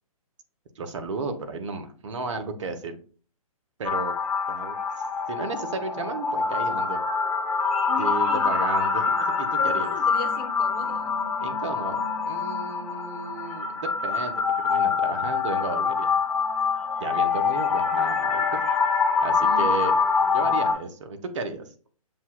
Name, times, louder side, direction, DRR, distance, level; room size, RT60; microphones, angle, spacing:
voice 1, 0.8-3.0 3.8-4.1 4.5-4.7 5.3-7.0 8.0-9.9 11.4-12.0 12.3-16.2 17.0-18.5 19.2-20.0 20.3-21.7, right 4 dB, 55° right, 7 dB, 0.8 m, -33 dB
sound 1, 3.8-20.7, left 5 dB, 5° left, 1.3 m, -25 dB
voice 2, 7.9-8.6 9.6-11.2 19.4-19.8 20.2-20.6, left 6 dB, 35° left, 4 dB, 0.9 m, -38 dB
7.4 x 2.8 x 2.2 m, 0.42 s
figure-of-eight pair, 130°, 19 cm